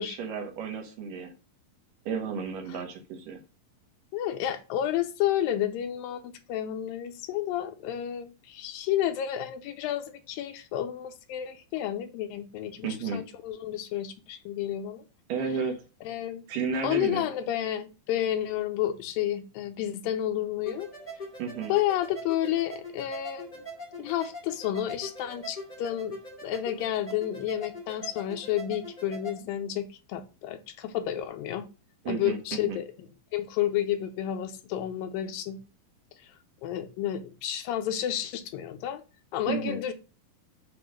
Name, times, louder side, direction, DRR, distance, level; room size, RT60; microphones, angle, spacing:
voice 1, 0.0-1.3 2.1-3.4 12.8-13.2 15.3-15.8 16.5-17.3 21.4-21.7 32.0-32.8 39.5-39.8, right 5 dB, 70° right, 2.5 m, -32 dB
voice 2, 4.1-15.0 16.0-16.5 16.8-20.9 21.7-23.5 24.0-26.2 26.4-31.7 32.1-32.9 33.3-35.6 36.2-36.3 36.6-39.0 39.3-39.9, left 11 dB, 80° left, 2.3 m, -31 dB
sound 1, 20.6-29.4, equal, 20° left, 1.3 m, -42 dB
7.9 x 3.0 x 6.2 m
omnidirectional pair, 4.2 m